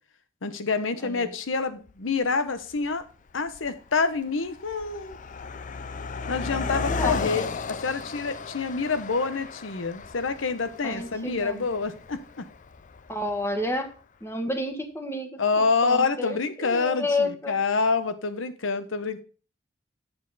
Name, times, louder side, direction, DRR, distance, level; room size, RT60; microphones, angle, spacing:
voice 1, 0.4-3.0 3.3-5.2 6.3-12.4 15.4-19.2, left 4 dB, 90° left, 11 dB, 0.9 m, -27 dB
voice 2, 1.0-1.3 6.4-7.2 10.8-11.6 13.1-13.9 14.2-17.6, left 1 dB, 15° left, 6 dB, 1.2 m, -31 dB
Car passing by, 1.9-2.0 2.8-3.0 3.3-13.7, left 4 dB, 40° left, 0.5 m, -35 dB
7.5 x 7.1 x 4.0 m, 0.36 s
head